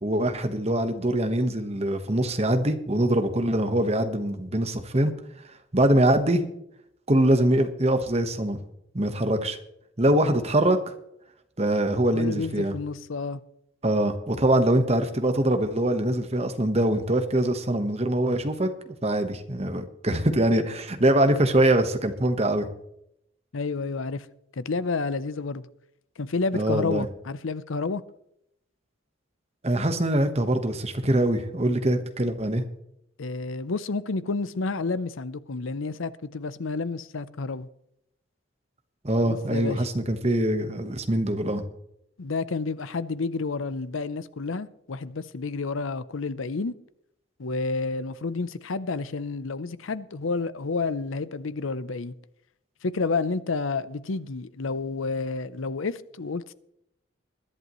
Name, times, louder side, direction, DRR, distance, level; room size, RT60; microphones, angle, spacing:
voice 1, 0.0-5.1 5.7-6.4 7.1-8.6 8.9-9.6 10.0-10.9 11.6-12.7 13.8-22.7 26.5-27.1 29.6-32.6 39.0-41.6, right 1 dB, 30° right, 1.2 m, -23 dB
voice 2, 12.1-13.4 23.5-24.3 24.6-25.7 26.2-28.0 33.2-37.7 39.2-39.8 42.2-46.7 47.4-52.1 52.8-56.5, left 4 dB, 80° left, 0.7 m, -30 dB
21.5 x 11.0 x 3.1 m
head